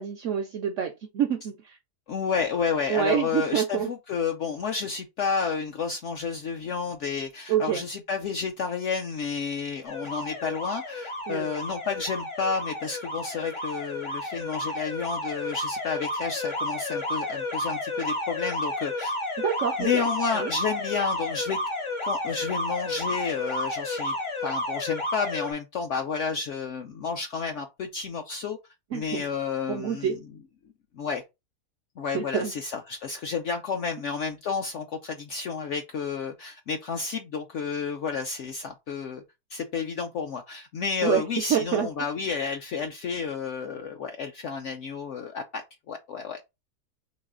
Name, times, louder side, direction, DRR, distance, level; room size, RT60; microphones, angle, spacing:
voice 1, 0.0-1.8 2.9-3.9 7.5-7.8 11.3-11.5 19.4-20.1 20.4-20.5 28.9-29.2 29.7-30.2 32.1-32.5 41.0-41.2 41.5-41.9, right 9 dB, 75° right, 0.7 m, -27 dB
voice 2, 2.1-19.2 19.8-21.6 22.0-24.1 24.4-28.6 28.9-30.1 30.9-31.2 32.0-39.2 39.5-46.5, left 5 dB, 65° left, 0.7 m, -31 dB
Alarm, 9.8-25.5, left 1 dB, 30° left, 0.5 m, -32 dB
4.0 x 3.2 x 3.7 m
omnidirectional pair, 1.8 m